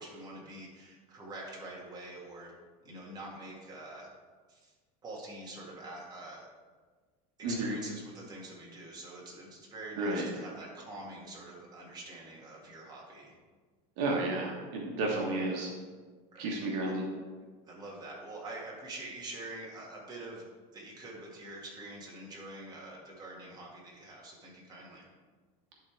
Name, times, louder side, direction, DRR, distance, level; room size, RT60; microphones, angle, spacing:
voice 1, 0.0-2.5 2.8-4.1 4.5-4.7 5.0-6.5 7.4-13.3 16.3-16.5 16.8-16.9 17.7-20.5 20.7-25.1, right 2 dB, 20° right, -4 dB, 2.0 m, -45 dB
voice 2, 14.0-15.7 16.4-17.1, right 2 dB, 60° right, -1 dB, 1.4 m, -32 dB
11.0 x 3.8 x 4.6 m, 1.4 s
supercardioid pair, 140°, 20 cm